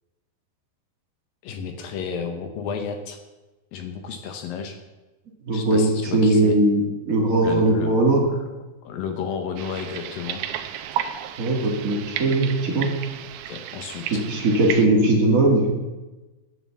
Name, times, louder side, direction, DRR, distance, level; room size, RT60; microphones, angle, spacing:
voice 1, 1.4-3.2 3.7-4.8 5.5-6.6 7.4-8.0 8.8-10.4 13.5-14.2, left 6 dB, 70° left, 6 dB, 2.3 m, -32 dB
voice 2, 5.5-8.2 11.4-12.9 14.1-15.7, right 2 dB, 50° right, -1 dB, 1.0 m, -20 dB
sound 1, 9.6-14.9, right 10 dB, 90° right, 3.1 m, -33 dB
10.5 x 9.6 x 7.4 m, 1.1 s
omnidirectional pair, 5.0 m